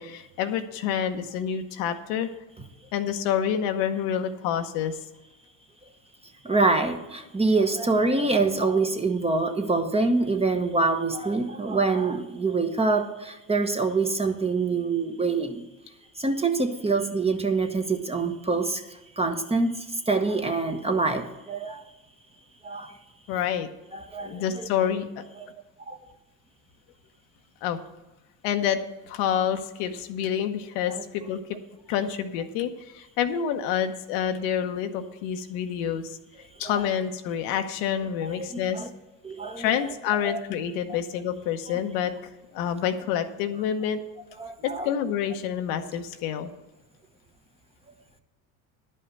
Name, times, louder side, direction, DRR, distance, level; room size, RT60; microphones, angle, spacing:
voice 1, 0.0-2.3 2.9-5.0 9.6-9.8 11.1-11.3 15.2-15.4 23.3-23.7 24.2-25.2 27.6-27.8 28.4-28.8 29.0-31.6 31.9-36.2 36.6-38.9 39.6-44.0 44.6-46.5, left 9 dB, 80° left, 7 dB, 1.0 m, -28 dB
voice 2, 6.4-15.6 16.2-18.8 19.2-21.8 22.6-22.9 23.9-24.4 25.4-25.5 25.9-26.0 36.6-36.8 38.2-38.9 39.2-39.7 40.2-40.4 42.6-42.7 44.4-44.9, right 3 dB, 15° right, 6 dB, 1.1 m, -25 dB
11.0 x 5.6 x 7.7 m, 1.0 s
supercardioid pair, 85°, 41 cm